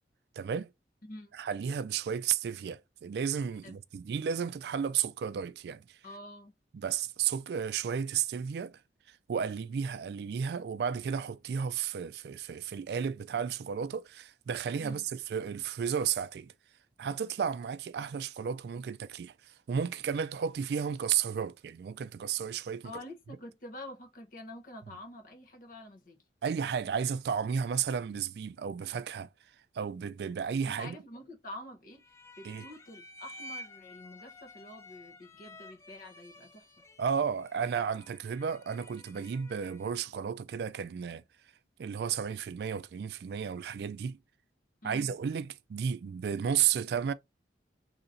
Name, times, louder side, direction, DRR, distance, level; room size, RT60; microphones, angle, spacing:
voice 1, 0.4-0.7 1.3-6.0 6.7-8.8 9.1-16.5 17.0-22.9 26.4-29.3 29.7-31.0 32.4-32.7 37.0-41.2 41.8-44.2 44.8-47.1, right 7 dB, 65° right, 0.3 m, -33 dB
voice 2, 1.0-1.3 3.6-3.8 6.0-6.5 14.8-15.0 22.8-26.2 30.7-32.0 32.4-36.7 44.8-45.1, left 1 dB, 50° left, 1.0 m, -47 dB
sound 1, 32.0-40.1, left 1 dB, 15° left, 0.5 m, -51 dB
3.9 x 2.9 x 2.5 m
head